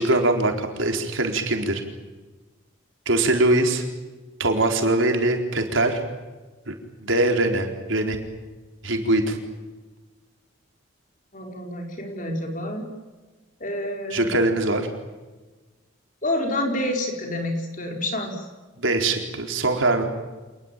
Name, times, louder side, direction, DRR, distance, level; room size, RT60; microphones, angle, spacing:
voice 1, 0.0-1.8 3.1-3.8 4.4-6.0 6.7-6.8 7.0-8.2 8.8-9.4 14.1-14.9 18.8-20.0, right 2 dB, 75° right, 3 dB, 4.2 m, -22 dB
voice 2, 11.3-12.9 13.6-14.3 16.2-18.5, left 1 dB, 40° left, 2 dB, 4.6 m, -28 dB
27.0 x 20.5 x 9.0 m, 1.2 s
head